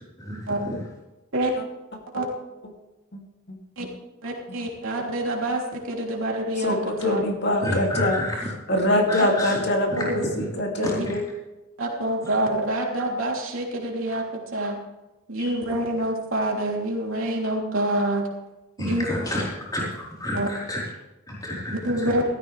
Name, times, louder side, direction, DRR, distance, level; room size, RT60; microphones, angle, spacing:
voice 1, 4.2-6.8 7.0-7.2 9.2-9.3 9.9-10.1 10.8-11.1 11.8-14.8 15.3-18.3 18.8-19.0 20.3-20.5 21.7-22.2, right 1 dB, 70° right, -1 dB, 3.2 m, -26 dB
voice 2, 6.6-8.2 8.7-11.2, left 1 dB, 50° left, 1 dB, 2.6 m, -24 dB
voice 3, 7.6-8.5 9.1-9.6 10.0-10.1 10.8-11.2 15.4-15.5 18.8-19.4 19.7-20.8 21.3-22.1, left 1 dB, 15° left, -5 dB, 4.1 m, -30 dB
16.5 x 14.0 x 3.4 m, 1.0 s
head